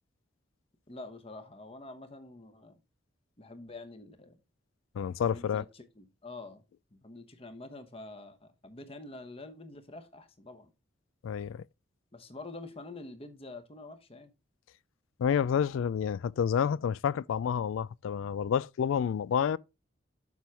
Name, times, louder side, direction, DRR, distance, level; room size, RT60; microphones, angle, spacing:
voice 1, 0.9-2.8 3.4-4.4 5.2-6.6 6.9-10.7 12.1-14.3, left 2 dB, 30° left, 1.0 m, -46 dB
voice 2, 5.0-5.6 11.2-11.6 15.2-19.6, left 7 dB, 85° left, 0.3 m, -29 dB
7.2 x 6.2 x 3.3 m
head